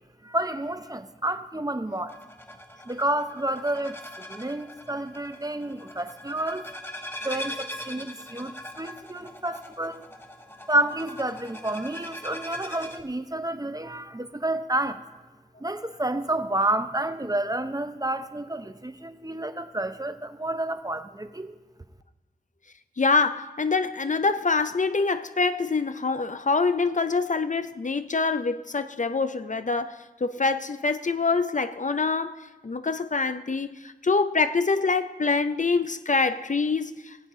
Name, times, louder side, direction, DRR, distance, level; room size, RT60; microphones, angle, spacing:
voice 1, 0.2-2.1 2.9-4.0 4.3-6.7 7.2-10.1 10.7-15.0 15.6-21.6, right 1 dB, 25° right, 0.7 m, -29 dB
sound 1, 2.1-13.0, left 1 dB, 15° left, 1.0 m, -41 dB
voice 2, 23.0-37.2, left 4 dB, 50° left, 0.4 m, -25 dB
20.0 x 7.9 x 3.7 m
wide cardioid pair, 45°, 16 cm